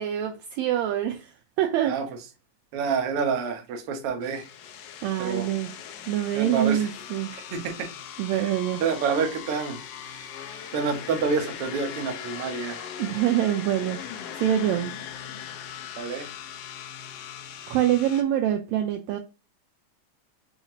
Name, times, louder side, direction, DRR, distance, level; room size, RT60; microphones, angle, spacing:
voice 1, 0.0-2.0 5.0-5.7 6.1-7.3 8.2-8.8 13.0-14.0 14.4-14.9 17.7-19.2, right 11 dB, 80° right, 1.7 m, -25 dB
voice 2, 2.7-4.5 5.2-5.5 6.3-6.8 7.5-7.7 8.3-8.5 8.8-9.8 10.7-12.9 16.0-16.3, right 5 dB, 65° right, 1.5 m, -28 dB
sound 1, 4.2-18.2, left 9 dB, 80° left, 1.4 m, -39 dB
5.6 x 2.8 x 2.7 m
omnidirectional pair, 3.4 m